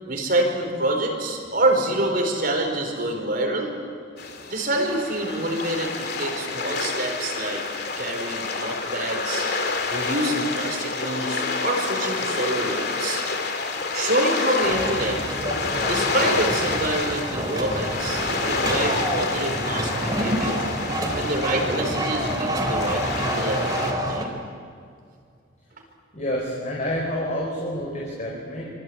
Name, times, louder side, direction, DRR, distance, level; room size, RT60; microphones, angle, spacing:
voice 1, 0.0-3.8 4.5-7.6 8.0-9.5 9.9-13.2 13.9-15.2 15.8-20.7 21.1-24.3, right 1 dB, 50° right, 2 dB, 4.6 m, -26 dB
sound 1, 4.2-23.9, left 4 dB, 55° left, 2.7 m, -28 dB
sound 2, 14.6-24.2, right 1 dB, 20° right, 3.7 m, -28 dB
voice 2, 26.1-28.6, equal, 40° left, -3 dB, 4.9 m, -28 dB
27.0 x 23.5 x 9.0 m, 2.3 s
head